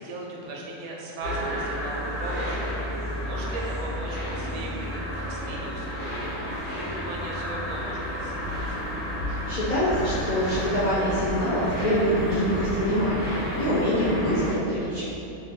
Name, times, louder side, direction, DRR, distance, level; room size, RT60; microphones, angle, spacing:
voice 1, 0.0-6.4 6.7-8.8, right 2 dB, 90° right, -2 dB, 1.1 m, -38 dB
sound 1, 1.2-14.5, equal, 40° left, 1.0 m, -31 dB
voice 2, 9.3-15.1, equal, 85° left, -9 dB, 0.3 m, -25 dB
3.0 x 2.1 x 4.1 m, 2.7 s
omnidirectional pair, 1.5 m